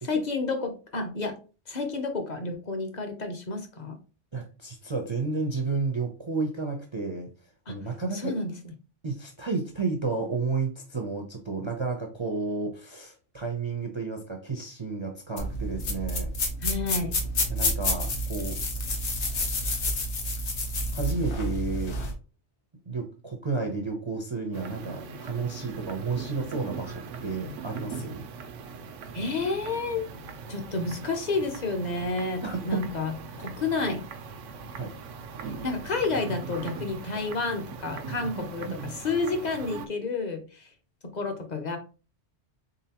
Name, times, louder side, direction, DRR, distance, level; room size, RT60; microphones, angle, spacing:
voice 1, 0.0-1.4 1.7-4.0 7.7-7.8 8.1-8.7 16.6-17.2 29.1-30.0 30.5-34.0 35.4-40.7 41.0-41.8, left 3 dB, 40° left, 4 dB, 0.8 m, -30 dB
voice 2, 4.3-7.3 7.7-8.3 9.0-16.3 17.5-18.6 20.9-22.0 22.9-28.2 32.4-32.9 34.8-34.9 38.4-38.9, right 4 dB, 35° right, 2 dB, 0.5 m, -32 dB
sound 1, 15.4-22.1, left 1 dB, 65° left, 1.1 m, -29 dB
sound 2, 24.5-39.9, right 4 dB, 85° right, 0.9 m, -40 dB
3.9 x 3.6 x 2.8 m, 0.34 s
omnidirectional pair, 1.2 m